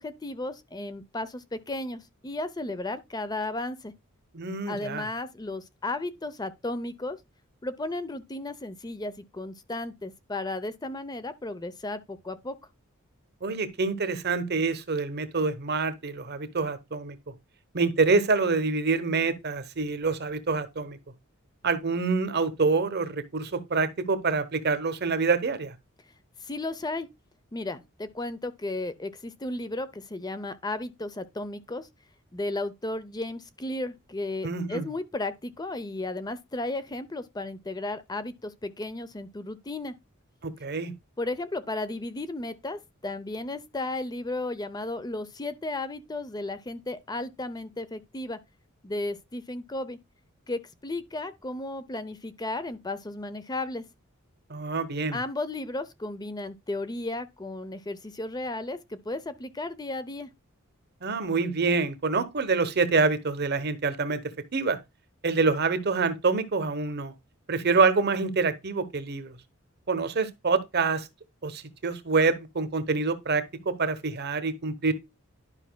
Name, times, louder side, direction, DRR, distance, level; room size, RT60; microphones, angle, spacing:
voice 1, 0.0-3.9 4.7-7.2 7.6-12.6 26.4-27.1 27.5-31.9 32.3-39.9 41.2-48.4 48.8-50.0 50.5-53.8 55.1-60.3, left 2 dB, 20° left, 0.6 m, -34 dB
voice 2, 4.3-5.1 13.4-17.1 17.7-21.0 21.6-25.7 34.4-34.9 40.4-40.9 54.5-55.2 61.0-64.2 64.5-64.8 65.2-67.1 67.5-69.3 69.9-71.1 71.4-74.9, right 4 dB, 50° right, 1.0 m, -26 dB
11.5 x 5.5 x 2.2 m
head